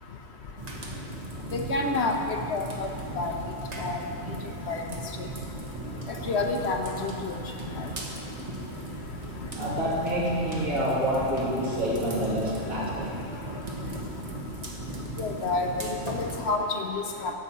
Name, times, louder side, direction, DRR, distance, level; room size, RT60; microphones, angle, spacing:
sound 1, 0.6-16.5, right 1 dB, 30° right, 1.2 m, -37 dB
voice 1, 1.5-2.1 2.5-2.9 3.2-3.3 3.8-4.0 4.7-4.8 6.3-7.3 15.2-15.7 16.5-17.3, left 3 dB, 60° left, 3 dB, 1.0 m, -28 dB
voice 2, 9.5-13.1, equal, 85° right, -7 dB, 3.0 m, -27 dB
11.0 x 5.4 x 7.3 m, 2.7 s
omnidirectional pair, 1.4 m